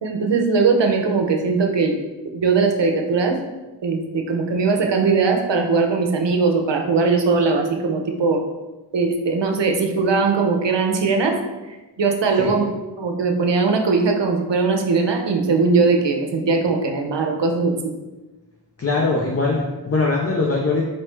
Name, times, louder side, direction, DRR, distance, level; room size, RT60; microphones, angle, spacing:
voice 1, 0.0-1.9 2.3-3.4 3.8-8.4 8.9-11.4 11.7-12.7 13.0-17.9, right 4 dB, 85° right, 4 dB, 0.6 m, -20 dB
voice 2, 18.8-20.8, left 3 dB, 35° left, -2 dB, 0.6 m, -21 dB
4.4 x 3.3 x 3.1 m, 1.1 s
wide cardioid pair, 45°, 43 cm